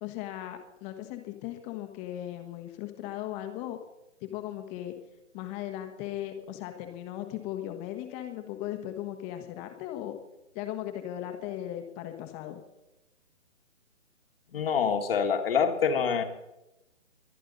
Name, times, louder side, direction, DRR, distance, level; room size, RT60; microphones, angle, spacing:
voice 1, 0.0-3.8 4.2-4.9 5.3-10.2 10.5-12.6, left 12 dB, 15° left, 7 dB, 1.3 m, -37 dB
voice 2, 14.5-16.2, left 6 dB, 50° left, 7 dB, 1.8 m, -26 dB
23.0 x 10.0 x 4.1 m, 0.94 s
figure-of-eight pair, 145°, 37 cm